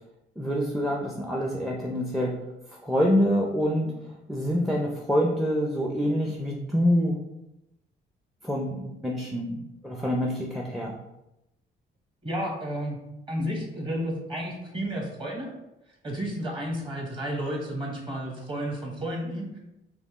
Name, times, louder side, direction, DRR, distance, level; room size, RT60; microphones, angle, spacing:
voice 1, 0.4-2.3 2.7-7.2 8.4-11.0, equal, ahead, -1 dB, 0.5 m, -26 dB
voice 2, 12.2-13.0 13.3-15.5 16.0-19.6, equal, 25° right, -1 dB, 1.3 m, -32 dB
4.3 x 3.1 x 3.0 m, 0.90 s
cardioid pair, 90°, 20 cm